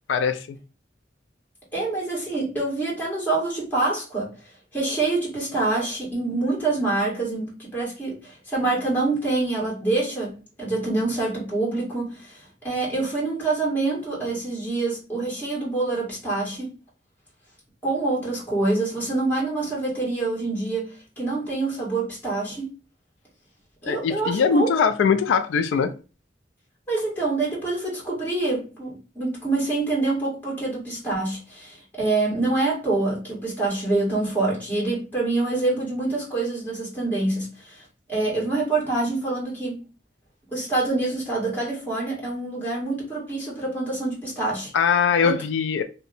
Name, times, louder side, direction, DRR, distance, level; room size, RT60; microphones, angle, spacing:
voice 1, 0.1-0.6 23.8-25.9 44.7-45.8, left 6 dB, 75° left, 0.3 m, -21 dB
voice 2, 1.7-4.3 4.7-16.7 17.8-22.7 23.8-24.7 26.9-37.8 38.1-39.8 40.5-44.7 45.2-45.4, right 2 dB, 10° left, 1.5 m, -26 dB
2.7 x 2.1 x 4.0 m
head